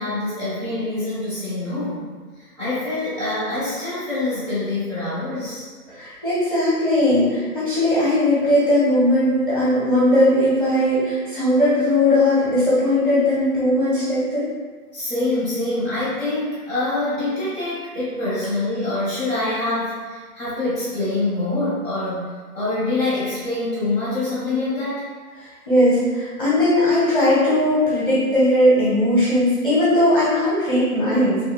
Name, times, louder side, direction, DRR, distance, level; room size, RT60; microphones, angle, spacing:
voice 1, 0.0-2.0 2.4-5.7 14.9-25.1, left 2 dB, 15° right, -12 dB, 1.1 m, -25 dB
voice 2, 5.9-14.4 25.4-31.4, left 1 dB, 35° left, -9 dB, 0.7 m, -18 dB
3.2 x 2.7 x 2.3 m, 1.5 s
figure-of-eight pair, 160°, 46 cm